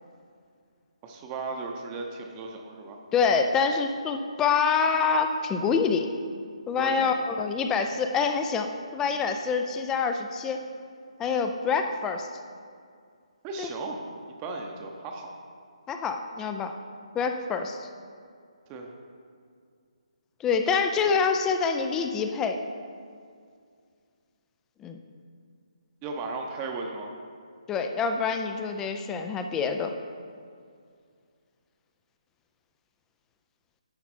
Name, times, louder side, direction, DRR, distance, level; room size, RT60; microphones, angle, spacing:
voice 1, 1.0-3.0 6.8-7.2 13.4-14.0 14.4-15.3 18.7-18.9 26.0-27.1, right 3 dB, 20° right, 2 dB, 0.8 m, -36 dB
voice 2, 3.1-6.1 6.7-10.6 11.2-12.3 13.6-13.7 15.9-16.7 17.1-17.9 20.4-22.6 24.8-25.0 27.7-29.9, left 5 dB, 10° left, 6 dB, 0.4 m, -26 dB
10.5 x 5.7 x 4.3 m, 2.2 s
figure-of-eight pair, 150°, 4 cm